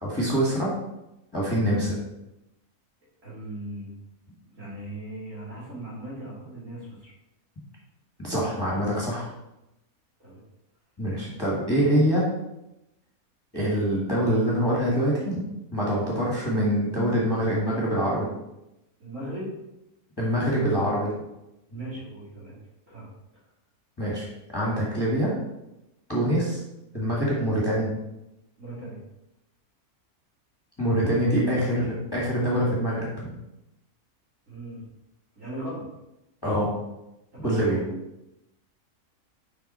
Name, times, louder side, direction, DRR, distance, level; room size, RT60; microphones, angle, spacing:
voice 1, 0.0-0.7 1.3-2.0 8.2-9.3 11.0-12.3 13.5-15.4 15.7-18.3 20.2-21.1 21.7-21.8 24.0-24.2 24.5-25.3 26.1-26.6 26.9-27.9 30.8-33.3 36.4-36.7 37.4-37.8, equal, 15° left, -6 dB, 1.6 m, -24 dB
voice 2, 3.2-3.9 4.6-7.1 10.2-10.4 19.0-19.5 20.3-20.8 21.7-22.6 22.9-23.1 28.6-29.0 34.5-34.8 35.3-35.8 37.3-37.8, right 1 dB, 60° right, -8 dB, 3.1 m, -38 dB
5.6 x 5.3 x 4.3 m, 0.90 s
omnidirectional pair, 1.6 m